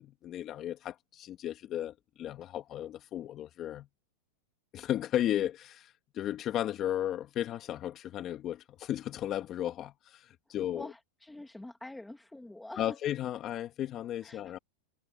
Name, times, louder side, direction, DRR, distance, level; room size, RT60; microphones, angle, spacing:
voice 1, 0.0-3.9 4.7-10.9 12.8-14.6, left 12 dB, 35° left, 2.5 m, -35 dB
voice 2, 10.7-13.0 14.2-14.5, left 1 dB, 5° left, 2.3 m, -46 dB
supercardioid pair, 140°, 0 cm